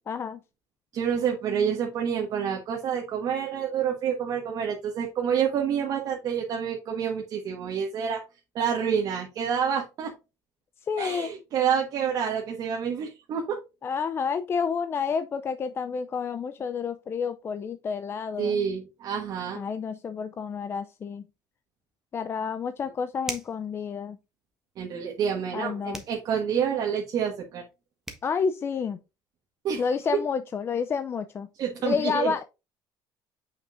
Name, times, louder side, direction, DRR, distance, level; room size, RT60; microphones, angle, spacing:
voice 1, 0.1-0.4 10.9-11.3 13.8-18.6 19.5-21.2 22.1-24.2 25.5-26.0 28.2-29.0 29.8-31.5 31.8-32.4, left 6 dB, 30° left, 0.4 m, -29 dB
voice 2, 0.9-8.2 8.5-10.1 11.0-13.6 18.4-19.6 24.8-27.6 29.6-29.8 31.6-32.3, right 7 dB, 50° right, 1.4 m, -28 dB
sound 1, 23.2-23.7 25.9-26.2 27.7-27.8 28.1-28.3, right 1 dB, 5° right, 1.3 m, -37 dB
7.0 x 5.8 x 2.5 m
cardioid pair, 125°, 8 cm